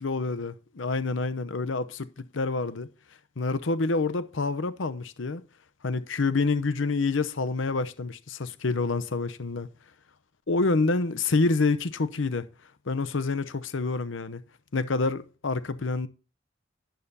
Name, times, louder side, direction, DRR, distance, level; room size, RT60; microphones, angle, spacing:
voice 1, 0.0-2.9 3.4-5.4 5.8-9.7 10.5-12.5 12.9-14.4 14.7-16.1, left 3 dB, 80° left, 0.8 m, -27 dB
12.0 x 10.5 x 2.7 m
head